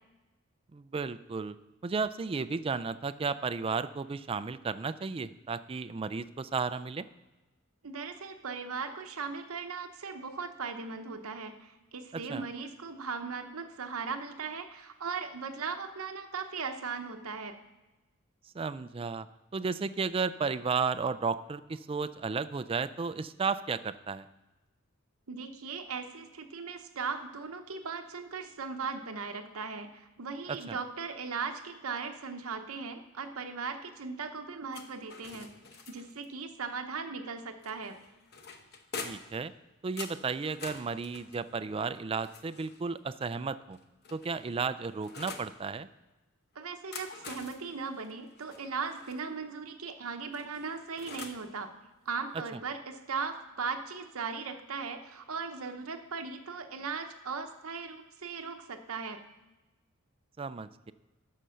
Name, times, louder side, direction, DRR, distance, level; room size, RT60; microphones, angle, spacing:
voice 1, 0.7-1.6 1.8-7.1 12.1-12.5 18.5-19.3 19.5-24.3 30.5-30.8 39.0-39.5 39.8-43.8 44.1-45.9 60.4-60.9, right 5 dB, 25° right, 14 dB, 0.3 m, -33 dB
voice 2, 7.8-17.5 25.3-35.5 35.9-38.0 46.5-51.7 52.1-59.2, right 5 dB, 80° right, 5 dB, 0.8 m, -38 dB
sound 1, 34.7-36.3 37.6-39.4 40.0-42.9 43.7-45.5 46.7-49.2 50.3-51.5, left 4 dB, 50° left, 0.9 m, -46 dB
10.0 x 6.6 x 6.3 m, 1.1 s
head